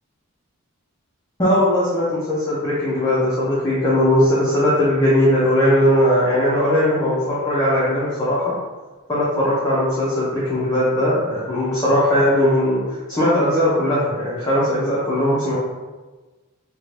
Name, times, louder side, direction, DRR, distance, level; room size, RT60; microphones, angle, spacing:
voice 1, 1.4-8.5 9.1-15.6, left 1 dB, 15° left, -9 dB, 0.5 m, -19 dB
2.6 x 2.1 x 3.1 m, 1.2 s
head